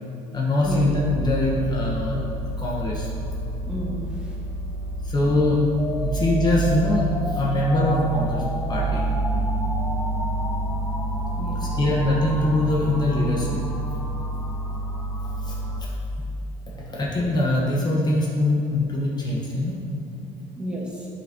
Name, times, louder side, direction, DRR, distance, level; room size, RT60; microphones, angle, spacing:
voice 1, 0.3-2.2 2.6-3.1 5.0-5.7 6.0-9.0 11.6-13.6 15.4-15.9 16.9-19.8, left 1 dB, 30° left, -3 dB, 1.1 m, -23 dB
sound 1, 0.6-15.8, right 2 dB, 60° right, 1.2 m, -28 dB
voice 2, 3.6-4.4 6.0-6.1 7.5-7.6 11.3-11.8 16.7-17.0 20.2-21.1, right 1 dB, 5° right, -4 dB, 1.3 m, -33 dB
sound 2, 5.8-15.8, left 1 dB, 10° left, 0.7 m, -35 dB
8.5 x 5.3 x 2.8 m, 2.7 s
cardioid pair, 105°, 14 cm